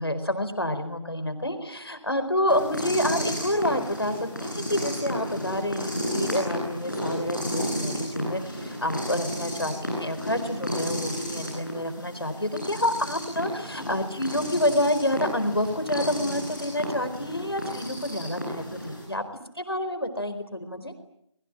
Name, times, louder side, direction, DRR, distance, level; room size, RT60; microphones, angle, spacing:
voice 1, 0.0-19.3 19.5-20.9, left 1 dB, 55° left, 9 dB, 4.4 m, -28 dB
sound 1, 2.4-19.0, equal, ahead, 4.6 m, -33 dB
25.5 x 23.0 x 8.9 m, 0.75 s
figure-of-eight pair, 180°, 16 cm